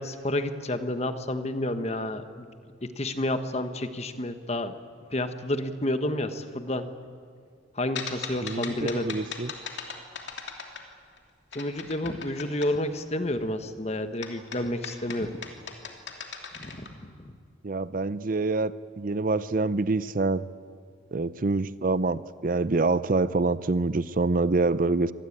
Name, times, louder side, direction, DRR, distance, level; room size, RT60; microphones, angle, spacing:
voice 1, 0.0-2.5 2.8-4.8 5.1-6.9 7.7-9.2 11.5-15.3 16.6-17.4, left 1 dB, 35° left, 9 dB, 1.3 m, -30 dB
sound 1, 7.9-11.2 11.5-12.7 14.2-16.9, left 6 dB, 65° left, 2.8 m, -38 dB
voice 2, 8.4-9.5 17.6-20.4 21.1-25.1, right 3 dB, 45° right, 16 dB, 0.5 m, -26 dB
25.5 x 19.5 x 8.7 m, 2.1 s
head